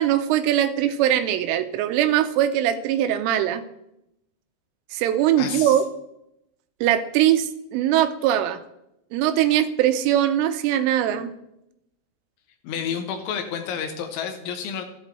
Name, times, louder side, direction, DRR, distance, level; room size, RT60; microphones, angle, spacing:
voice 1, 0.0-3.6 4.9-5.8 6.8-8.6 9.1-11.3, right 11 dB, 85° right, 8 dB, 3.2 m, -21 dB
voice 2, 5.4-5.8 12.6-14.8, left 7 dB, 75° left, 5 dB, 3.4 m, -30 dB
14.0 x 8.3 x 3.2 m, 0.82 s
omnidirectional pair, 5.8 m